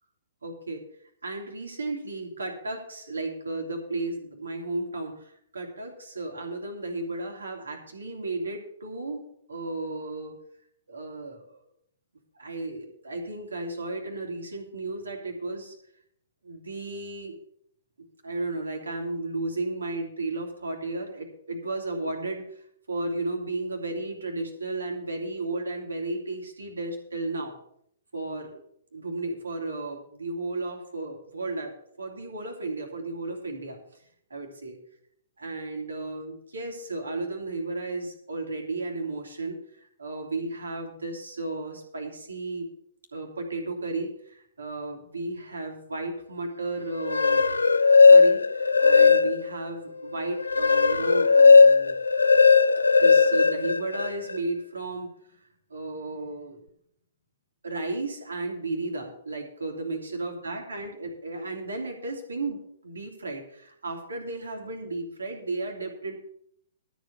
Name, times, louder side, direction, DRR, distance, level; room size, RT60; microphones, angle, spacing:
voice 1, 0.4-0.8 1.2-9.2 9.5-10.4 10.9-11.6 12.3-15.7 16.4-17.4 18.0-27.5 28.1-28.6 28.9-34.0 34.3-34.8 35.4-42.7 43.1-47.4 48.0-52.0 53.0-56.6 57.6-66.1, right 2 dB, 70° right, 2 dB, 3.0 m, -34 dB
sound 1, 46.9-49.6 50.1-54.4, left 4 dB, 75° left, 0.5 m, -17 dB
13.0 x 5.2 x 8.5 m, 0.68 s
figure-of-eight pair, 115°, 0 cm